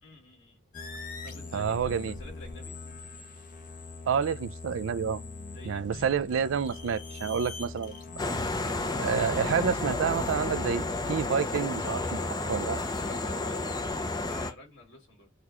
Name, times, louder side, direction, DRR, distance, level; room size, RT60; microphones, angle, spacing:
voice 1, 0.0-0.6 1.2-2.8 5.5-6.1 12.9-15.3, left 1 dB, 65° left, 2.5 m, -50 dB
sound 1, 0.7-11.3, left 3 dB, 45° left, 0.9 m, -42 dB
voice 2, 1.5-2.1 4.1-5.2 5.6-8.0 9.0-12.8, right 7 dB, 75° right, 0.4 m, -29 dB
sound 2, 8.2-14.5, left 2 dB, 20° left, 0.6 m, -31 dB
6.4 x 2.3 x 2.9 m
head